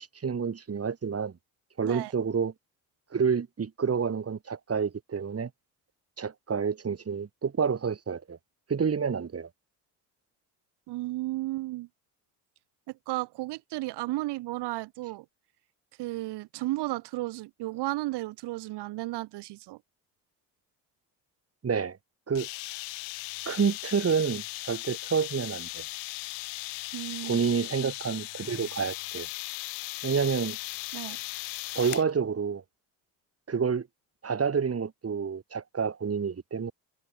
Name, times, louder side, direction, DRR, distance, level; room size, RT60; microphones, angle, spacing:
voice 1, 0.0-1.3 1.8-2.5 3.1-5.5 6.2-8.4 8.7-9.5 21.6-22.0 22.3-22.5 23.5-25.8 27.2-29.3 30.0-30.6 31.7-32.6 33.5-33.9 34.2-36.7, right 6 dB, 35° right, 5.6 m, -29 dB
voice 2, 10.9-11.9 12.9-15.3 16.0-19.8 26.9-27.4 27.8-27.9 30.9-31.2, right 19 dB, 75° right, 4.2 m, -34 dB
sound 1, 22.3-32.1, left 39 dB, 90° left, 6.5 m, -38 dB
supercardioid pair, 75°, 41 cm